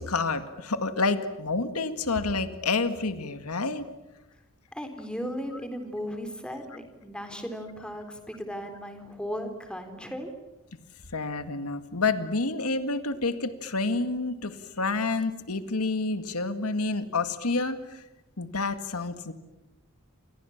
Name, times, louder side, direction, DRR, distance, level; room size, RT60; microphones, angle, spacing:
voice 1, 0.0-3.8 11.1-18.0 18.4-19.3, left 3 dB, 90° left, 10 dB, 2.0 m, -29 dB
voice 2, 4.8-10.3, equal, 5° left, 7 dB, 3.8 m, -36 dB
29.0 x 27.5 x 7.3 m, 0.99 s
head